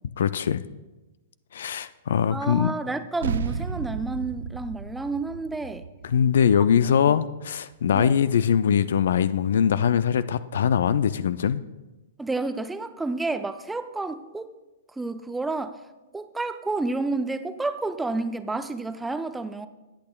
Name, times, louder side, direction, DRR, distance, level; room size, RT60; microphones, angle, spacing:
voice 1, 0.2-0.6 1.5-2.7 6.0-11.6, left 8 dB, 60° left, 16 dB, 0.4 m, -22 dB
voice 2, 2.3-5.8 7.1-7.2 7.9-8.2 12.2-14.5 15.0-15.8 16.1-19.7, right 3 dB, 5° right, 11 dB, 0.5 m, -30 dB
sound 1, 3.2-8.0, right 6 dB, 60° right, 0.4 m, -34 dB
19.5 x 8.5 x 2.3 m, 1.1 s
figure-of-eight pair, 110°, 0 cm